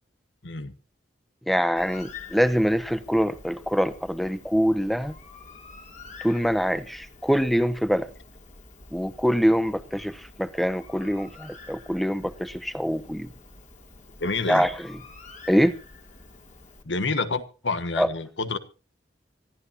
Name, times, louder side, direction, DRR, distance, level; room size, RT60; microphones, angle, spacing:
voice 1, 0.4-0.7 14.2-14.7 16.8-18.6, left 3 dB, 85° left, 1.5 m, -28 dB
voice 2, 1.5-5.1 6.2-8.1 8.9-13.3 14.5-14.9 15.5-15.8 18.0-18.1, equal, ahead, 0.8 m, -24 dB
Bird, 1.8-16.8, left 4 dB, 40° left, 2.9 m, -47 dB
25.5 x 13.5 x 2.8 m
head